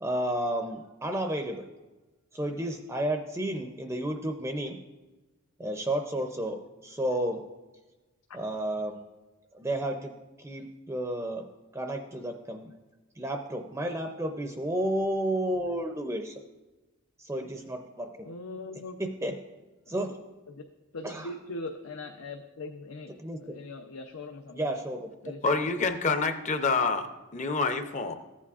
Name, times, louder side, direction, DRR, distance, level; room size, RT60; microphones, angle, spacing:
voice 1, 0.0-1.7 2.3-4.8 5.6-7.4 8.3-9.0 9.5-10.1 10.4-11.4 11.7-12.7 13.2-16.4 17.2-18.1 19.0-19.3 19.9-20.2 21.0-21.3 23.2-23.4 24.5-25.1, right 1 dB, 15° right, 4 dB, 0.5 m, -31 dB
voice 2, 18.2-19.4 19.9-20.2 20.5-20.6 20.9-24.7 25.2-25.5, left 2 dB, 85° left, 4 dB, 0.6 m, -41 dB
voice 3, 25.4-28.1, left 4 dB, 35° left, 8 dB, 0.6 m, -27 dB
14.0 x 8.3 x 2.4 m, 1.1 s
head